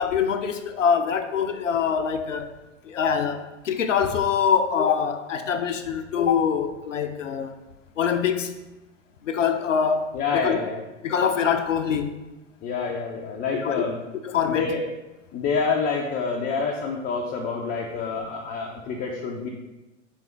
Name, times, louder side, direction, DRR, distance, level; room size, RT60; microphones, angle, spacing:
voice 1, 0.0-2.5 2.9-7.5 8.0-8.5 9.2-10.6 11.0-12.2 13.5-13.8 14.2-14.7, left 7 dB, 80° left, 7 dB, 0.5 m, -24 dB
voice 2, 10.1-10.8 12.6-14.0 14.5-14.8 15.3-19.5, left 5 dB, 25° left, 0 dB, 0.4 m, -27 dB
3.4 x 3.3 x 4.5 m, 1.0 s
figure-of-eight pair, 90°, 37 cm